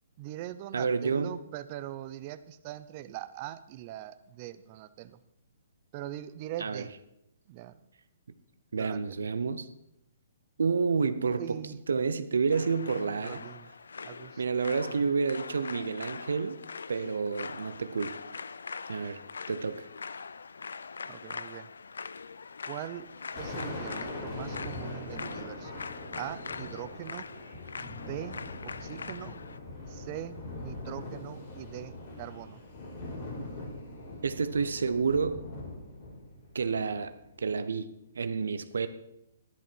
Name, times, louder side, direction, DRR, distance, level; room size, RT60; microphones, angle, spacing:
voice 1, 0.2-5.2 5.9-6.9 7.5-7.8 8.8-9.2 11.3-11.8 13.2-13.7 14.0-14.4 14.8-15.0 21.1-21.7 22.7-25.8 26.1-27.3 27.8-29.4 29.9-32.6, right 13 dB, 35° right, 13 dB, 0.6 m, -42 dB
voice 2, 0.7-1.3 6.6-6.8 8.7-9.7 10.6-11.6 11.9-13.4 14.4-16.6 16.9-18.2 18.9-19.2 19.5-19.9 34.2-35.4 36.5-37.9 38.1-38.9, right 5 dB, 80° right, 12 dB, 0.7 m, -29 dB
sound 1, 12.5-29.6, left 5 dB, 85° left, 0.4 m, -43 dB
Thunder, 23.0-37.6, left 2 dB, 45° left, 4.5 m, -42 dB
11.0 x 10.5 x 4.5 m, 0.85 s
hypercardioid pair, 145°, 0 cm